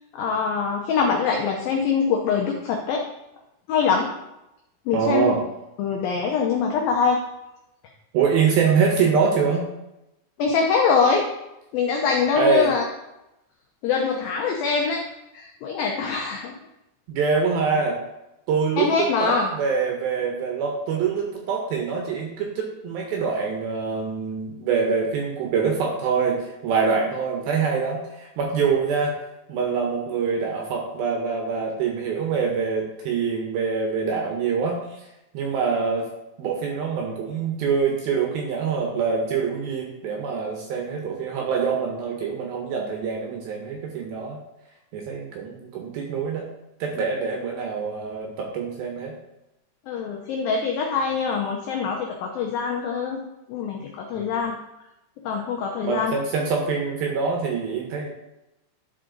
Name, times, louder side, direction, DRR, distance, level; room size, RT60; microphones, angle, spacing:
voice 1, 0.1-3.0 3.7-4.1 4.9-5.3 5.8-7.2 10.4-11.3 11.7-12.8 13.8-15.0 15.3-16.5 18.8-19.5 49.9-53.2 53.5-54.5 55.3-56.1, left 5 dB, 85° left, 1 dB, 2.0 m, -23 dB
voice 2, 4.9-5.4 8.1-9.7 12.4-12.7 17.1-18.0 18.5-29.2 29.5-35.0 35.3-36.1 36.4-44.4 44.9-46.5 46.8-49.1 54.1-54.3 55.8-58.1, right 5 dB, 75° right, 1 dB, 2.4 m, -25 dB
11.0 x 4.8 x 3.8 m, 0.91 s
omnidirectional pair, 5.2 m